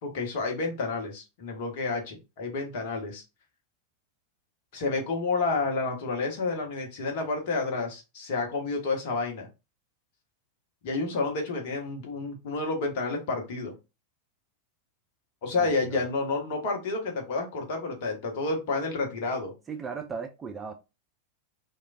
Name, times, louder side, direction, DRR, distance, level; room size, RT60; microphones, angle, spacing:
voice 1, 0.0-3.2 4.7-9.5 10.8-13.7 15.4-19.5, left 3 dB, 50° left, 0.9 m, -30 dB
voice 2, 15.6-16.0 19.7-20.7, right 5 dB, 20° right, 0.4 m, -37 dB
3.1 x 2.3 x 2.4 m
figure-of-eight pair, 90°, 0 cm